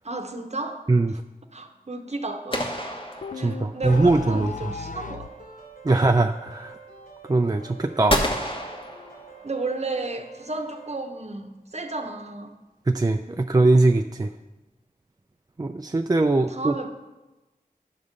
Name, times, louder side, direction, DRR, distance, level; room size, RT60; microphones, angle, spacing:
voice 1, 0.0-0.8 1.1-1.2 1.5-2.8 3.3-5.3 5.9-6.0 9.4-12.6 16.3-16.9, right 3 dB, 45° right, 6 dB, 0.8 m, -33 dB
sound 1, 2.5-4.0 8.1-9.7, equal, 35° left, 1.1 m, -29 dB
sound 2, 3.2-5.4, left 5 dB, 55° left, 0.4 m, -35 dB
voice 2, 3.4-4.7 5.8-6.8 7.3-8.2 12.9-14.3 15.6-16.9, right 2 dB, 25° right, 5 dB, 0.3 m, -21 dB
sound 3, 5.0-11.0, right 4 dB, 85° left, 2.3 m, -47 dB
9.5 x 3.6 x 6.5 m, 1.1 s
wide cardioid pair, 45°, 16 cm